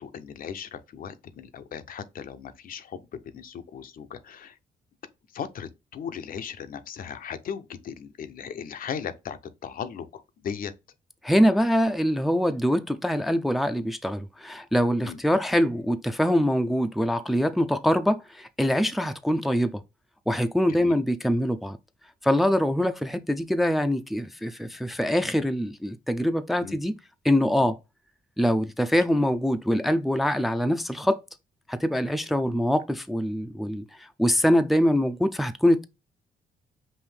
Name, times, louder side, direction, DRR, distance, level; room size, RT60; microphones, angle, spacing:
voice 1, 0.0-2.8 3.3-4.5 5.3-9.4 9.6-10.1 10.4-10.7 15.0-15.2 20.8-20.9 26.6-26.8, left 7 dB, 65° left, 0.6 m, -37 dB
voice 2, 11.2-19.8 20.3-21.8 22.2-26.9 27.2-27.8 28.4-31.2 31.7-33.8 34.2-35.9, equal, ahead, 0.4 m, -24 dB
5.4 x 2.6 x 3.3 m
cardioid pair, 70°, 16 cm